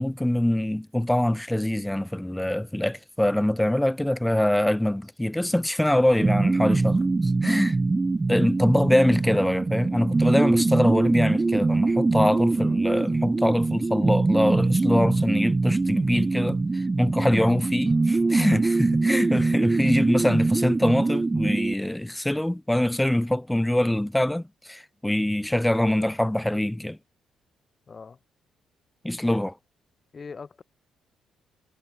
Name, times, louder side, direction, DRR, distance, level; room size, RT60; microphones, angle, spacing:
voice 1, 0.0-7.8 8.3-27.0 29.0-29.5, left 1 dB, 5° left, 1.9 m, -24 dB
sound 1, 6.2-21.7, right 3 dB, 25° right, 2.3 m, -23 dB
voice 2, 27.9-28.2 29.2-29.4 30.1-30.6, left 5 dB, 35° left, 5.9 m, -42 dB
cardioid pair, 90°, 0 cm